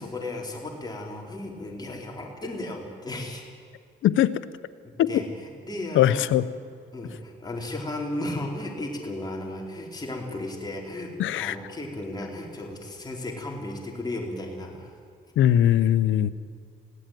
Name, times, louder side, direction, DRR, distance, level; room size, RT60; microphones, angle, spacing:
voice 1, 0.0-3.4 4.8-6.2 6.9-14.9, left 1 dB, 20° left, -1 dB, 4.4 m, -35 dB
voice 2, 4.0-4.4 5.0-5.2 5.9-6.5 11.2-11.6 15.4-16.3, left 11 dB, 80° left, 15 dB, 0.9 m, -20 dB
21.0 x 16.0 x 9.4 m, 2.2 s
cardioid pair, 90°, 20 cm